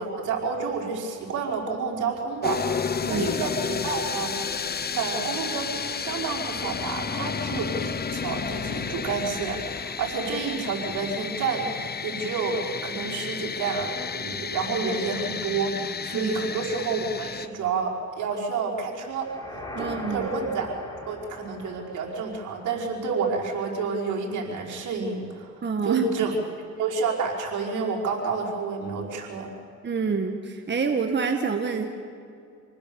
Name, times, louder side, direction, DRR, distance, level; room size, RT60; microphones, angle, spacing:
voice 1, 0.0-4.4 4.9-19.3 19.8-20.8 21.1-26.3 26.8-29.5, right 5 dB, 80° right, -1 dB, 5.1 m, -29 dB
sound 1, 2.4-17.5, left 6 dB, 30° left, 0.9 m, -32 dB
sound 2, 19.1-23.2, left 1 dB, 15° left, 5.0 m, -40 dB
voice 2, 19.7-20.3 25.6-26.1 29.8-31.9, right 5 dB, 35° right, 4 dB, 1.8 m, -27 dB
28.0 x 20.0 x 7.2 m, 2.4 s
cardioid pair, 90°, 30 cm